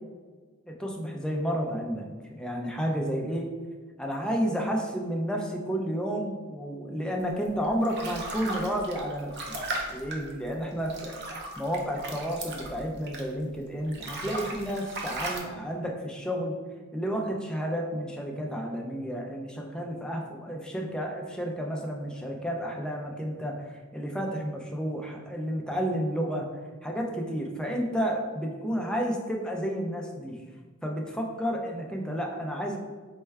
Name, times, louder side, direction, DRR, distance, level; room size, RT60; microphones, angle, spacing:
voice 1, 0.7-3.5 4.0-9.6 9.9-11.2 11.6-16.6 16.9-26.5 26.8-30.4 30.8-32.8, equal, 5° left, 0 dB, 0.4 m, -31 dB
sound 1, 7.4-13.5 13.8-15.4, right 2 dB, 55° right, 0.6 m, -37 dB
4.4 x 2.2 x 3.3 m, 1.4 s
head